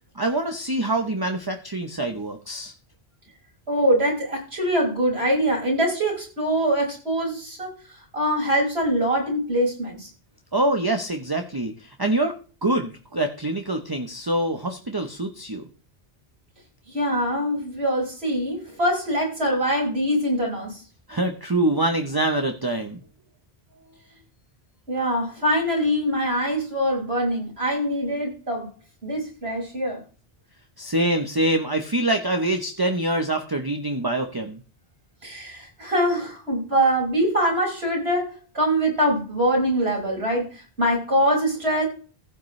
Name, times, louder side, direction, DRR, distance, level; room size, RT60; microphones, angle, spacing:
voice 1, 0.1-2.7 10.5-15.6 21.1-23.0 30.8-34.6, right 1 dB, 25° right, 5 dB, 0.9 m, -25 dB
voice 2, 3.7-7.7 8.1-10.1 16.9-20.8 24.9-28.7 29.0-30.0 35.2-40.5 40.8-41.9, equal, 80° right, -1 dB, 5.9 m, -23 dB
15.0 x 9.1 x 3.2 m, 0.36 s
omnidirectional pair, 1.1 m